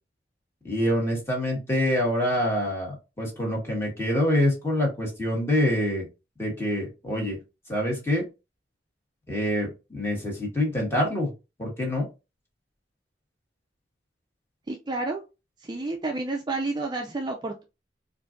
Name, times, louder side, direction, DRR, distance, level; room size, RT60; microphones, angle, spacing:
voice 1, 0.6-6.0 6.4-7.4 7.7-8.2 9.3-11.3 11.6-12.1, left 1 dB, 15° left, -1 dB, 1.5 m, -26 dB
voice 2, 14.7-15.2 15.6-17.6, right 2 dB, 25° right, 2 dB, 0.4 m, -30 dB
4.3 x 2.5 x 2.5 m, 0.27 s
head